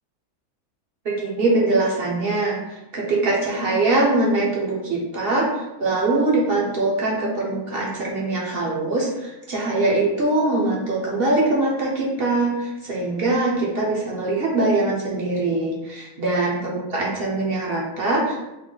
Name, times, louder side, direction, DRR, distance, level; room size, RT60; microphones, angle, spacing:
voice 1, 1.0-18.5, right 2 dB, 50° right, -4 dB, 0.8 m, -22 dB
3.8 x 2.1 x 3.8 m, 0.95 s
omnidirectional pair, 1.7 m